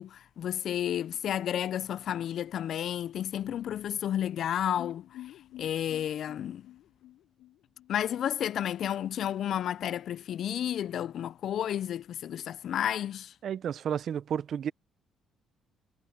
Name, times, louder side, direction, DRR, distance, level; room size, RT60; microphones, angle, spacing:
voice 1, 0.0-5.0 5.6-6.7 7.9-13.3, left 10 dB, 65° left, 0.4 m, -31 dB
sound 1, 4.8-8.6 8.9-9.0 9.3-9.4, left 14 dB, 85° left, 6.5 m, -49 dB
voice 2, 13.4-14.7, right 8 dB, 60° right, 0.6 m, -32 dB
cardioid pair, 105°, 0 cm